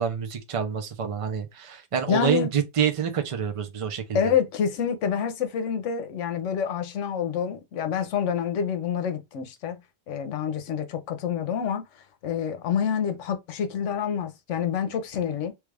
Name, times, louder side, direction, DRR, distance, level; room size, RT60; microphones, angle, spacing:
voice 1, 0.0-4.3, right 7 dB, 35° right, 0.5 m, -27 dB
voice 2, 2.1-2.5 4.1-9.8 10.1-15.5, left 7 dB, 75° left, 1.0 m, -27 dB
3.2 x 2.4 x 3.2 m
omnidirectional pair, 1.3 m